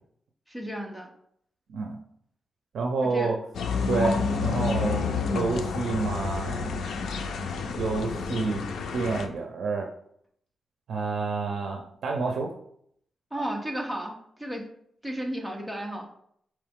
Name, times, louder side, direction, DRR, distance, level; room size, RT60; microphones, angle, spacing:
voice 1, 0.5-1.1 3.0-3.3 13.3-14.7 15.0-16.1, right 1 dB, ahead, 0 dB, 0.7 m, -33 dB
voice 2, 2.7-3.4 3.9-4.1 4.4-6.7 7.8-8.6 8.9-9.9 10.9-12.5, right 4 dB, 75° right, 2 dB, 0.5 m, -28 dB
sound 1, 3.5-9.3, left 4 dB, 90° left, 0.4 m, -29 dB
4.6 x 3.0 x 3.5 m, 0.68 s
wide cardioid pair, 175°, 0 cm